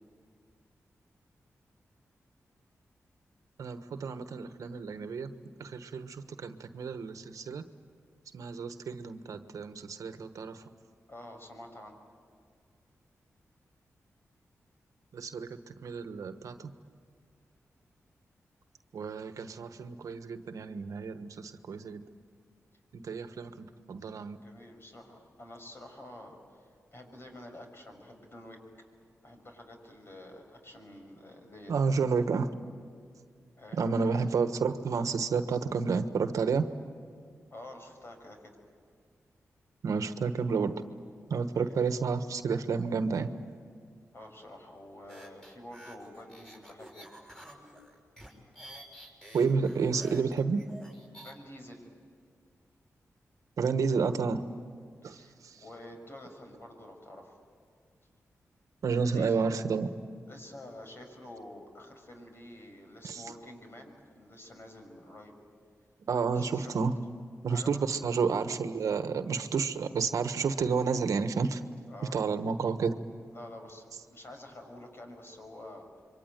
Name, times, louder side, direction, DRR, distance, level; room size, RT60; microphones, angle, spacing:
voice 1, 3.6-5.3 5.6-7.6 8.3-10.6 15.1-16.7 18.9-22.0 22.9-24.4 31.7-32.5 33.8-36.7 39.8-40.7 41.3-43.3 49.3-50.6 53.6-54.4 55.0-55.2 58.8-59.9 63.0-63.2 66.1-66.9 67.4-71.6 72.1-73.0, right 5 dB, 85° right, 9 dB, 1.2 m, -30 dB
voice 2, 11.1-12.0 24.4-28.9 29.2-32.1 33.6-34.2 37.5-38.5 41.5-41.7 44.1-47.1 51.2-51.9 55.0-57.4 58.9-59.4 60.3-65.3 66.3-66.8 67.5-67.8 71.9-72.2 73.3-76.0, left 1 dB, 45° left, 3 dB, 6.2 m, -48 dB
sound 1, 45.1-51.3, right 1 dB, 10° left, 5.9 m, -50 dB
27.0 x 23.5 x 9.2 m, 2.2 s
cardioid pair, 75°, 6 cm